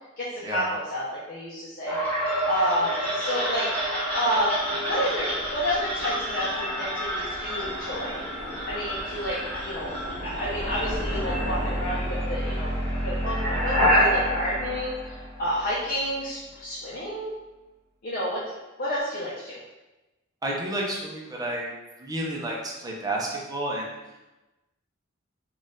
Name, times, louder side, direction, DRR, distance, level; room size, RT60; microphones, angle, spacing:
voice 1, 0.2-2.0 2.4-3.7 4.1-8.1 8.6-12.7 13.0-17.3 18.0-18.4 18.8-19.6, equal, 45° left, -7 dB, 0.7 m, -30 dB
sound 1, 1.9-15.7, equal, 5° left, 1.2 m, -28 dB
voice 2, 20.4-21.7 22.0-23.9, right 1 dB, 20° right, -2 dB, 0.7 m, -30 dB
4.2 x 2.5 x 3.6 m, 1.1 s
head